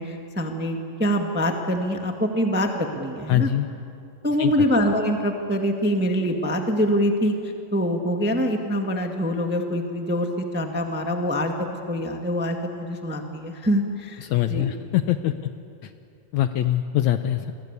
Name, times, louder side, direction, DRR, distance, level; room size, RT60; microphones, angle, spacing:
voice 1, 0.0-3.5 4.2-7.3 7.7-14.7, equal, 5° right, 3 dB, 0.9 m, -24 dB
voice 2, 3.3-3.7 4.4-4.7 14.2-15.3 15.8-15.9 16.3-17.5, left 12 dB, 75° left, 9 dB, 1.8 m, -23 dB
29.0 x 22.0 x 8.3 m, 2.5 s
omnidirectional pair, 3.8 m